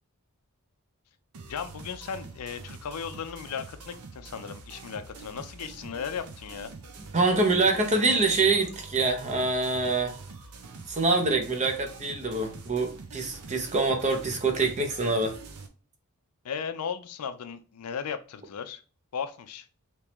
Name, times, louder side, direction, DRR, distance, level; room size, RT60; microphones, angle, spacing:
sound 1, 1.3-15.7, right 4 dB, 90° right, 0.7 m, -45 dB
voice 1, 1.5-6.7 16.4-18.8 19.1-19.7, left 7 dB, 90° left, 0.5 m, -36 dB
voice 2, 7.1-10.2 10.9-15.4, right 3 dB, 30° right, 0.7 m, -25 dB
3.4 x 2.9 x 3.0 m
head